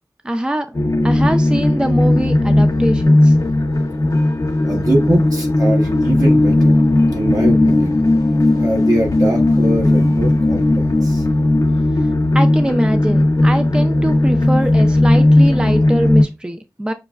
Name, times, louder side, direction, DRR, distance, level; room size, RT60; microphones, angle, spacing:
voice 1, 0.2-0.7 1.0-3.3 12.3-16.9, right 1 dB, 15° right, 0.4 m, -22 dB
sound 1, 0.7-16.2, left 1 dB, 75° left, 0.6 m, -15 dB
voice 2, 4.6-6.8 7.1-8.0 8.6-11.2, right 1 dB, 70° right, 1.4 m, -22 dB
6.0 x 2.2 x 2.3 m
wide cardioid pair, 40°, 6 cm